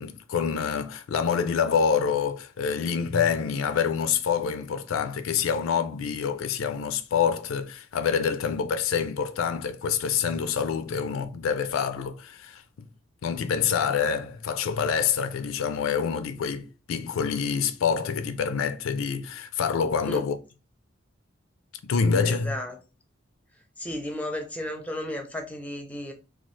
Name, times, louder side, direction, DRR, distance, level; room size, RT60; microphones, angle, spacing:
voice 1, 0.0-12.6 13.2-20.4 21.8-22.5, left 6 dB, 75° left, 0.4 m, -26 dB
voice 2, 22.2-22.8 23.8-26.1, left 1 dB, 5° left, 0.5 m, -34 dB
3.1 x 2.4 x 3.1 m
head